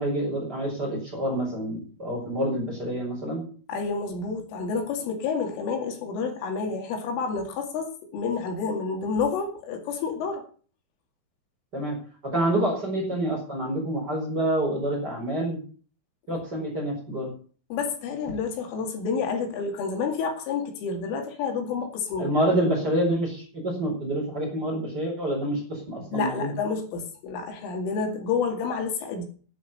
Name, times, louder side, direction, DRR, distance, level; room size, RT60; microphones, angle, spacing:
voice 1, 0.0-3.4 11.7-12.0 12.3-15.6 16.3-17.3 22.2-26.5, right 1 dB, 20° right, 0 dB, 4.5 m, -27 dB
voice 2, 3.7-10.4 17.7-22.3 26.1-29.3, left 5 dB, 80° left, 3 dB, 4.8 m, -29 dB
10.5 x 10.5 x 6.7 m, 0.42 s
omnidirectional pair, 5.6 m